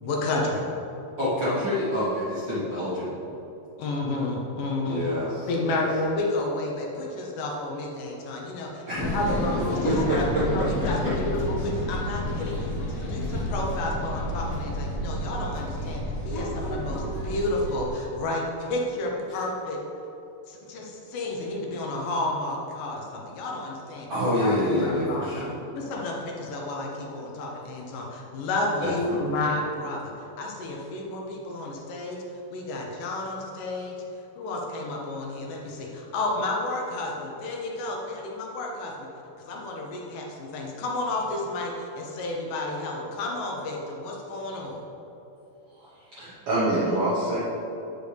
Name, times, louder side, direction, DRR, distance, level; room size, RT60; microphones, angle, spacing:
voice 1, 0.0-0.7 3.8-5.0 5.5-19.8 20.5-24.1 24.4-25.5 25.7-32.2 32.5-34.0 34.4-39.1 39.4-44.8, left 2 dB, 75° left, -1 dB, 2.3 m, -31 dB
voice 2, 1.2-3.2 4.8-5.8 8.9-9.2 9.9-10.7 11.0-11.1 19.3-19.4 24.1-25.6 28.8-29.4, equal, 55° right, -11 dB, 1.3 m, -27 dB
sound 1, 9.0-17.9, equal, 55° left, 1.8 m, -30 dB
voice 3, 45.8-47.4, right 1 dB, 75° right, -7 dB, 1.3 m, -26 dB
8.9 x 6.4 x 3.3 m, 3.0 s
omnidirectional pair, 4.2 m